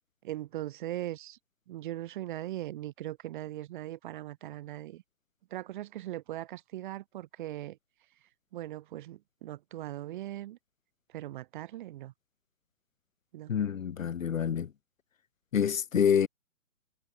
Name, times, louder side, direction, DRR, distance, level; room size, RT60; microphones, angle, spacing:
voice 1, 0.2-1.4 1.7-5.0 5.5-7.8 8.5-10.6 11.1-12.1 13.3-13.5, right 14 dB, 35° right, 3.7 m, -39 dB
voice 2, 13.5-14.7 15.5-16.3, left 8 dB, 65° left, 1.8 m, -27 dB
hypercardioid pair, 155°, 42 cm